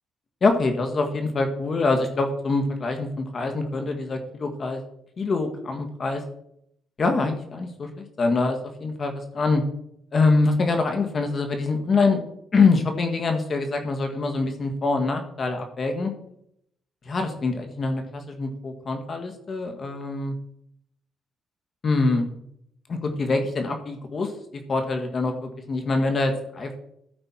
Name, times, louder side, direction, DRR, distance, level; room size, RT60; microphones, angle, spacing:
voice 1, 0.4-4.8 5.2-6.2 7.0-9.6 10.1-12.2 12.5-16.1 17.0-20.3 21.8-22.2 22.9-24.3 24.7-26.8, left 3 dB, 45° left, 5 dB, 1.5 m, -24 dB
13.5 x 5.5 x 4.4 m, 0.74 s
cardioid pair, 85°, 0 cm